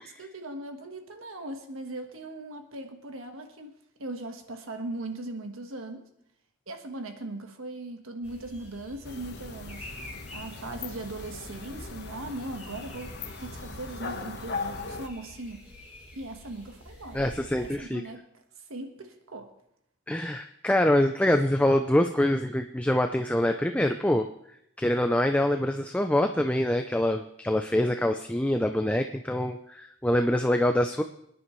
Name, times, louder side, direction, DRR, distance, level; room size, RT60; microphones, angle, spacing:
voice 1, 0.0-6.1 6.7-9.9 10.3-15.6 16.1-17.2 17.6-19.5, right 2 dB, 90° right, 5 dB, 1.4 m, -39 dB
sound 1, 8.2-17.8, left 1 dB, 10° right, 5.2 m, -48 dB
sound 2, 9.0-15.1, left 4 dB, 50° left, 1.2 m, -39 dB
voice 2, 17.1-18.0 20.1-24.3 24.8-31.0, left 1 dB, 5° left, 6 dB, 0.4 m, -25 dB
26.0 x 10.0 x 3.2 m, 0.75 s
head